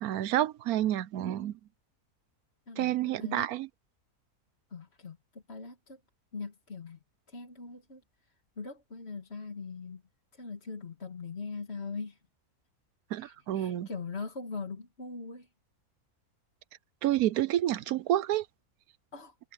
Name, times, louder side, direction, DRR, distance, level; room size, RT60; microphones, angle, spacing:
voice 1, 0.0-1.5 2.8-3.7 13.1-13.9 17.0-18.5, right 13 dB, 75° right, 1.1 m, -29 dB
voice 2, 4.7-6.0 6.3-7.0 7.3-10.0 10.3-12.2 13.2-15.5 19.1-19.4, left 4 dB, 45° left, 2.3 m, -41 dB
omnidirectional pair, 1.6 m